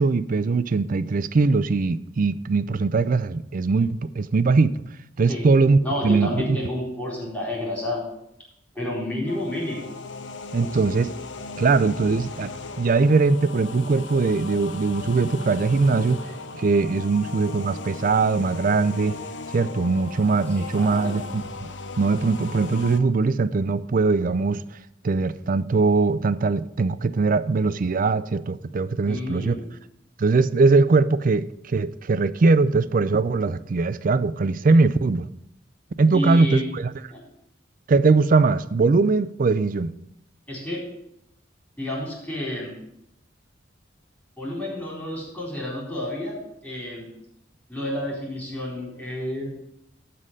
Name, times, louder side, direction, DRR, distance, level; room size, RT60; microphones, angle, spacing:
voice 1, 0.0-4.7 5.2-6.6 10.5-11.1 11.6-16.2 16.5-19.2 19.5-21.7 22.0-24.6 25.0-29.5 30.2-35.3 36.0-36.9 37.9-39.9, right 4 dB, 50° right, 0.4 m, -21 dB
voice 2, 5.8-8.0 8.7-9.9 10.6-10.8 20.7-21.2 29.1-29.7 36.1-36.7 37.1-37.2 40.5-40.9 41.8-42.8 44.4-47.1 47.7-49.5, left 1 dB, 5° left, 4.1 m, -30 dB
sound 1, 9.3-23.0, left 3 dB, 75° left, 0.8 m, -37 dB
12.5 x 4.3 x 7.5 m
head